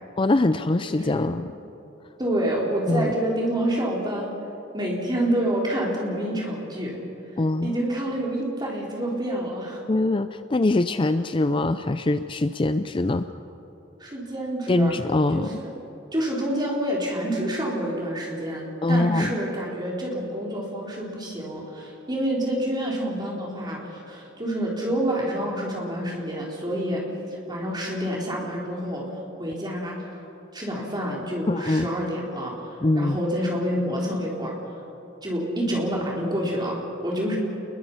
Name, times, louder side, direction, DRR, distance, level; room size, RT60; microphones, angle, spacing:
voice 1, 0.2-1.5 2.9-3.1 7.4-7.8 9.9-13.3 14.7-15.6 18.8-19.4 31.5-31.9 32.8-33.2, left 2 dB, 25° left, 10 dB, 0.5 m, -23 dB
voice 2, 0.9-1.2 2.2-4.3 4.7-7.0 7.6-9.8 14.0-14.9 15.3-15.5 16.1-27.0 27.5-29.1 29.4-30.0 30.5-34.5 35.2-37.4, right 1 dB, 20° right, -3 dB, 4.3 m, -28 dB
29.0 x 21.5 x 5.7 m, 2.9 s
head